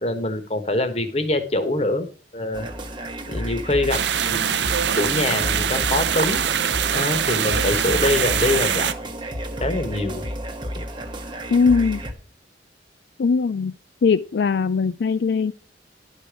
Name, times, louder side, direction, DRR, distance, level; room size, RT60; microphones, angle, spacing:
voice 1, 0.0-2.1 2.3-2.7 3.3-4.6 5.0-6.5 6.9-8.9 9.6-10.2, left 2 dB, 35° left, 9 dB, 1.3 m, -24 dB
sound 1, 2.5-12.1, equal, 25° right, 1.1 m, -31 dB
sound 2, 3.9-8.9, right 8 dB, 75° right, 0.6 m, -23 dB
voice 2, 11.5-12.0 13.2-13.7 14.0-15.5, left 5 dB, 65° left, 12 dB, 0.4 m, -20 dB
11.5 x 5.1 x 6.1 m, 0.38 s
head